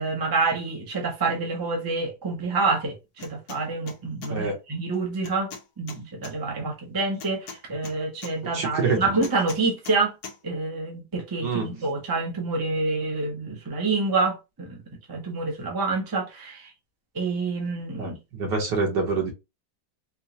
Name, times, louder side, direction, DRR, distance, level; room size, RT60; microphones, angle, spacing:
voice 1, 0.0-5.5 5.8-10.1 10.4-14.8 15.1-16.7 17.1-18.1, right 3 dB, 20° right, 0.6 m, -27 dB
sound 1, 3.2-3.6 3.9-4.3 5.2-6.3 7.2-8.3 9.2-10.0 10.2-10.4, left 5 dB, 65° left, 1.3 m, -40 dB
voice 2, 8.5-9.1 11.4-11.8 18.0-19.3, right 4 dB, 75° right, 1.8 m, -26 dB
4.4 x 2.2 x 2.7 m
omnidirectional pair, 1.9 m